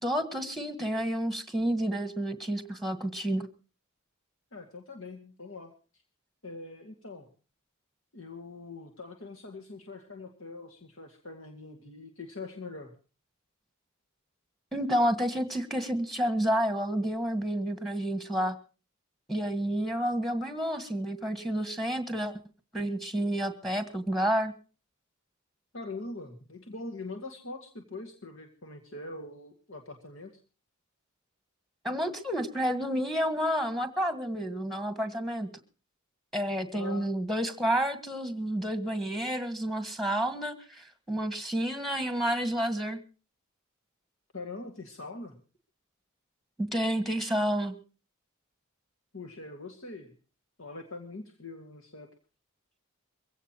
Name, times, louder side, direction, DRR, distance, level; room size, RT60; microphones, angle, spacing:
voice 1, 0.0-3.5 14.7-18.6 19.3-22.3 22.7-24.5 31.8-35.5 36.3-43.0 46.6-47.8, right 1 dB, ahead, 10 dB, 1.7 m, -30 dB
voice 2, 4.5-5.7 6.4-7.3 8.1-13.0 25.7-30.3 36.7-37.1 44.3-45.4 49.1-50.2 50.6-52.1, left 3 dB, 65° left, 4 dB, 2.2 m, -43 dB
23.0 x 16.5 x 3.0 m, 0.35 s
head